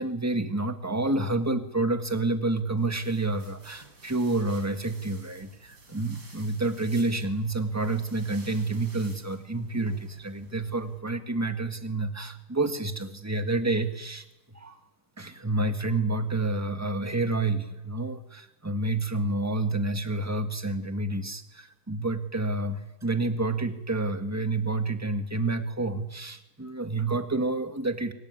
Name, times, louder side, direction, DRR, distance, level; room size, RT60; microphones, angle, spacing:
voice 1, 0.0-14.2 14.5-14.8 15.2-28.1, right 2 dB, 10° right, 7 dB, 1.7 m, -29 dB
sound 1, 2.8-11.0, right 2 dB, 85° right, 5.1 m, -52 dB
24.5 x 21.0 x 9.7 m, 0.93 s
omnidirectional pair, 1.8 m